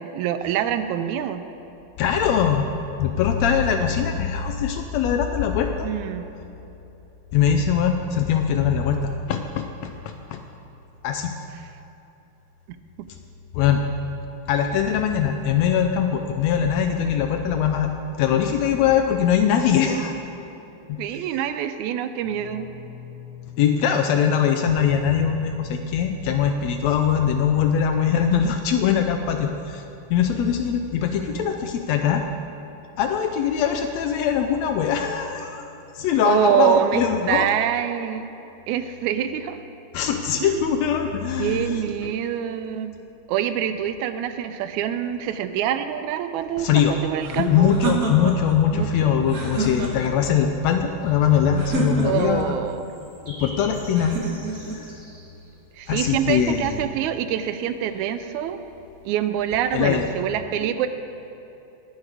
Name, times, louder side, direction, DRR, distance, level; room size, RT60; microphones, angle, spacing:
voice 1, 0.0-1.4 5.8-6.2 21.0-22.7 31.2-31.6 36.2-38.3 38.7-39.6 40.4-40.7 41.4-42.9 43.3-47.7 48.7-49.2 52.0-52.8 55.8-58.6 59.1-60.9, right 10 dB, 80° right, 10 dB, 1.9 m, -25 dB
voice 2, 2.0-2.7 3.0-5.9 7.3-9.0 9.3-10.4 11.0-11.3 13.5-13.8 14.5-17.9 18.2-20.1 20.9-21.0 23.6-29.8 30.1-32.2 33.0-35.7 36.0-37.5 39.9-42.1 46.6-47.0 47.3-52.6 53.3-54.2 54.7-54.8 55.9-56.8 59.7-60.1, left 8 dB, 80° left, 6 dB, 1.6 m, -22 dB
Guitar, 22.2-31.5, left 8 dB, 55° left, 2.5 m, -45 dB
sound 1, 47.2-48.6 49.2-50.3 51.6-52.5 53.9-54.8, right 3 dB, 55° right, 0.9 m, -28 dB
sound 2, 50.4-59.3, equal, 30° right, 2.3 m, -49 dB
19.0 x 6.4 x 4.8 m, 3.0 s
omnidirectional pair, 3.4 m